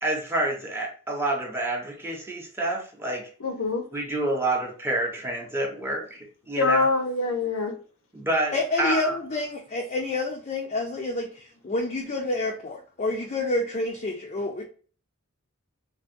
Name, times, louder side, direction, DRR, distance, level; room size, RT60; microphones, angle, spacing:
voice 1, 0.0-3.3 3.9-6.9 8.1-9.1, right 1 dB, 10° right, 0 dB, 0.7 m, -28 dB
voice 2, 3.4-3.8 6.6-7.7, left 3 dB, 75° left, 4 dB, 0.7 m, -24 dB
voice 3, 8.5-14.6, left 2 dB, 35° left, 0 dB, 0.4 m, -28 dB
3.4 x 2.1 x 2.5 m, 0.40 s
head